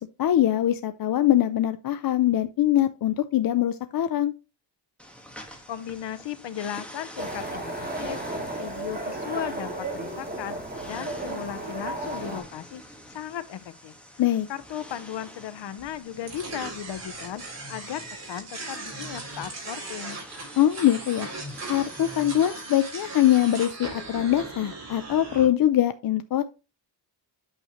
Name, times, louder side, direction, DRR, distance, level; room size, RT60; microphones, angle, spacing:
voice 1, 0.2-4.3 14.2-14.5 20.6-21.3 21.6-26.4, left 12 dB, 55° left, 0.5 m, -23 dB
sound 1, 5.0-22.5, equal, 5° left, 1.5 m, -46 dB
voice 2, 5.7-10.6 10.8-13.9 14.5-20.2, left 10 dB, 75° left, 0.9 m, -36 dB
sound 2, 7.2-12.4, right 2 dB, 20° right, 2.6 m, -34 dB
sound 3, 16.3-25.4, right 3 dB, 35° right, 3.9 m, -38 dB
8.9 x 6.5 x 3.0 m
wide cardioid pair, 155°, 43 cm